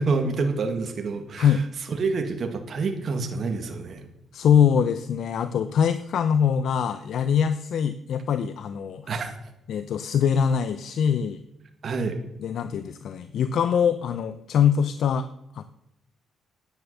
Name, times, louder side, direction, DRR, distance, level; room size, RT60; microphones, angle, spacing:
voice 1, 0.0-1.6 1.9-4.1 9.1-9.3 11.8-12.2, right 4 dB, 50° right, 5 dB, 2.0 m, -27 dB
voice 2, 4.3-9.1 9.7-11.4 12.4-15.3 15.5-15.6, left 8 dB, 70° left, 12 dB, 0.6 m, -23 dB
10.5 x 9.6 x 6.9 m, 0.85 s
cardioid pair, 90°, 0 cm